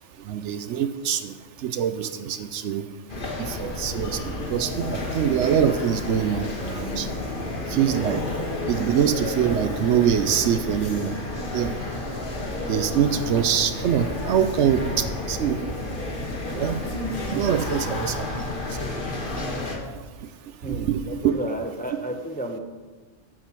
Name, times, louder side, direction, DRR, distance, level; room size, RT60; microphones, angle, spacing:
voice 1, 0.3-1.4 1.6-2.8 3.4-4.2 4.5-7.1 7.7-8.2 8.7-11.7 12.7-15.6 16.5-16.8 17.2-18.3 20.7-21.2, right 8 dB, 70° right, 11 dB, 0.9 m, -24 dB
sound 1, 3.1-19.8, left 2 dB, 45° left, 1.4 m, -31 dB
voice 2, 20.6-22.6, right 1 dB, 10° left, 3 dB, 0.5 m, -32 dB
7.8 x 7.4 x 5.8 m, 1.3 s
omnidirectional pair, 1.3 m